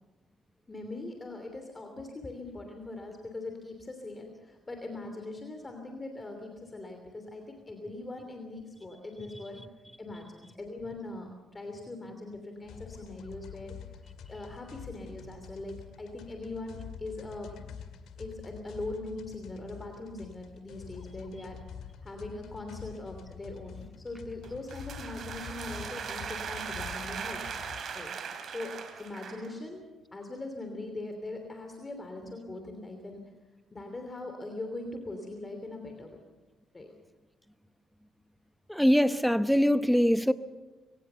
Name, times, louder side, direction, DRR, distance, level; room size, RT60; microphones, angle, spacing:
voice 1, 0.7-9.6 10.0-13.7 14.3-17.6 18.2-21.6 22.0-27.4 27.9-28.1 28.5-33.3 33.7-36.2 36.7-36.9, left 2 dB, 25° left, 3.0 m, -41 dB
sound 1, 12.6-27.8, left 7 dB, 80° left, 1.9 m, -47 dB
sound 2, 24.4-29.5, right 6 dB, 60° right, 3.1 m, -39 dB
voice 2, 38.7-40.3, equal, ahead, 0.8 m, -23 dB
23.5 x 18.0 x 6.9 m
cardioid pair, 90°, 0 cm